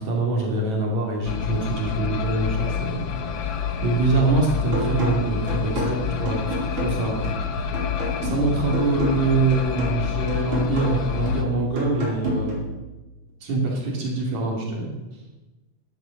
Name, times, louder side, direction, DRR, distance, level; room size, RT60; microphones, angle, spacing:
voice 1, 0.0-7.6 8.2-12.6 13.4-14.9, right 3 dB, 65° right, -1 dB, 4.1 m, -24 dB
sound 1, 1.3-11.4, left 7 dB, 75° left, 1.1 m, -28 dB
sound 2, 4.7-12.7, right 1 dB, 40° right, 5.3 m, -30 dB
12.0 x 11.5 x 6.5 m, 1.1 s
omnidirectional pair, 3.6 m